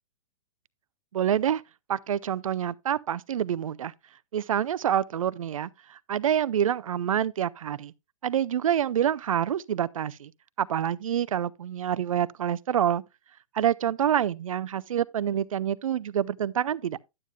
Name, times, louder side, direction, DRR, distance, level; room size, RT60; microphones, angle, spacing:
voice 1, 1.1-1.6 1.9-3.9 4.3-7.9 8.2-10.3 10.6-13.0 13.5-17.0, right 10 dB, 75° right, 0.4 m, -27 dB
11.0 x 9.3 x 2.2 m
hypercardioid pair, 115°, 18 cm